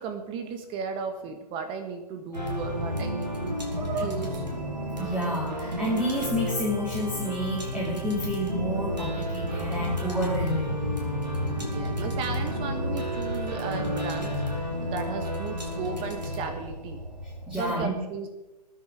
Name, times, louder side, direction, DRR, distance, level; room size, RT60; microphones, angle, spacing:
voice 1, 0.0-4.4 11.6-14.4 14.8-17.0 17.5-18.3, right 5 dB, 25° right, 6 dB, 1.5 m, -35 dB
sound 1, 2.3-17.6, equal, 85° right, 4.7 m, -31 dB
voice 2, 5.0-10.8 17.5-17.9, equal, 5° right, -3 dB, 2.9 m, -29 dB
20.5 x 10.0 x 5.0 m, 1.1 s
figure-of-eight pair, 125°, 21 cm